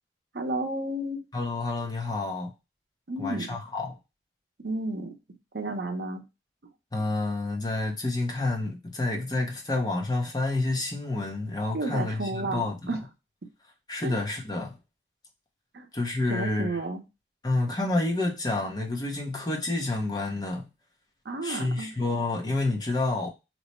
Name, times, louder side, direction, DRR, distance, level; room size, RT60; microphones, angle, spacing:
voice 1, 0.3-1.2 3.1-3.5 4.6-5.1 5.5-6.2 11.7-13.0 14.0-14.2 15.7-15.9 16.3-17.0 21.3-21.9, right 2 dB, 65° right, 0.6 m, -32 dB
voice 2, 1.3-2.5 3.2-4.0 6.9-12.9 13.9-14.8 15.9-16.8 17.4-20.7 21.4-23.3, left 2 dB, 20° left, 0.6 m, -29 dB
3.0 x 2.1 x 4.1 m
head